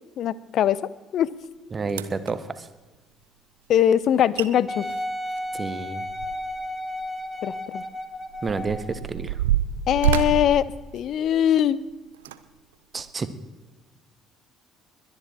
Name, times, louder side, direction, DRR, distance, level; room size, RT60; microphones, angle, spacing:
voice 1, 0.2-1.3 3.7-4.8 7.4-7.8 9.9-10.6 10.9-11.8, left 10 dB, 50° left, 20 dB, 0.6 m, -21 dB
sound 1, 1.4-1.5 1.9-2.3 4.0-4.1 4.4-4.5 4.8-6.6 7.0-7.1 7.8-11.6 12.1-12.4 13.0-13.1, right 10 dB, 70° right, 0.6 m, -27 dB
voice 2, 1.7-2.7 5.5-6.0 8.4-9.4 12.9-13.3, right 4 dB, 30° right, 13 dB, 1.1 m, -30 dB
Wind instrument woodwind instrument, 4.7-9.0 9.6-9.7, left 1 dB, 5° left, 1.8 m, -33 dB
21.5 x 10.5 x 4.4 m, 1.2 s
figure-of-eight pair, 55°, 0 cm